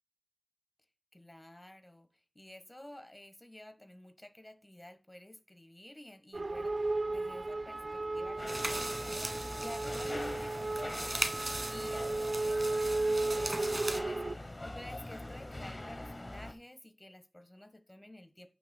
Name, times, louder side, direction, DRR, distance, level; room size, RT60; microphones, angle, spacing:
voice 1, 1.1-2.1 2.3-18.5, left 1 dB, 30° left, 10 dB, 1.3 m, -51 dB
sound 1, 6.3-14.4, right 2 dB, 80° right, 0.3 m, -34 dB
sound 2, 8.4-16.5, left 1 dB, 50° left, 1.0 m, -43 dB
sound 3, 8.5-14.0, right 2 dB, 55° right, 1.2 m, -39 dB
15.0 x 6.3 x 2.2 m, 0.30 s
wide cardioid pair, 45°, 0 cm